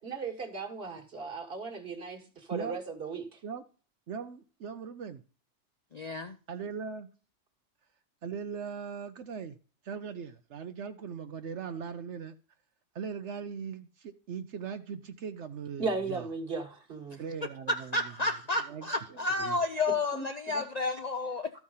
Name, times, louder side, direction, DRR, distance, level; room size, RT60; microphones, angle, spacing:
voice 1, 0.0-3.4 15.8-17.2 20.1-20.3 20.5-20.6, right 4 dB, 50° right, 1.8 m, -36 dB
voice 2, 4.1-5.2 6.5-7.1 8.2-9.6 9.8-12.3 12.9-16.3 17.2-18.3 18.6-19.6, right 6 dB, 65° right, 1.0 m, -39 dB
voice 3, 5.9-6.4 17.7-21.5, left 2 dB, 50° left, 0.5 m, -31 dB
13.0 x 4.7 x 5.5 m
omnidirectional pair, 1.3 m